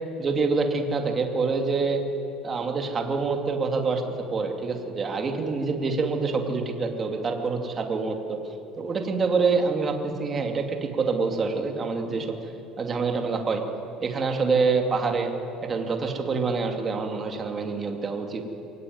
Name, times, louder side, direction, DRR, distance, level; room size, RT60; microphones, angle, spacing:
voice 1, 0.2-2.0 2.4-4.0 4.3-8.4 8.8-12.4 12.8-13.6 14.0-15.3 15.6-18.4, right 4 dB, 25° right, 4 dB, 2.4 m, -26 dB
23.5 x 18.0 x 9.5 m, 2.8 s
cardioid pair, 140°, 0 cm